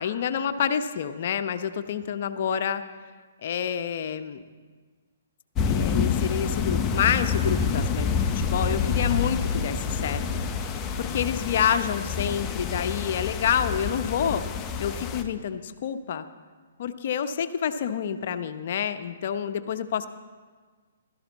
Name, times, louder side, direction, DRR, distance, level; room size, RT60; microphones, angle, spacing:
voice 1, 0.0-2.8 3.4-4.4 5.7-10.4 11.0-14.5 14.8-16.3 16.8-20.1, left 8 dB, 55° left, 10 dB, 0.8 m, -28 dB
sound 1, 5.6-15.2, left 6 dB, 20° left, 0.9 m, -27 dB
15.5 x 13.0 x 4.1 m, 1.5 s
figure-of-eight pair, 130°, 0 cm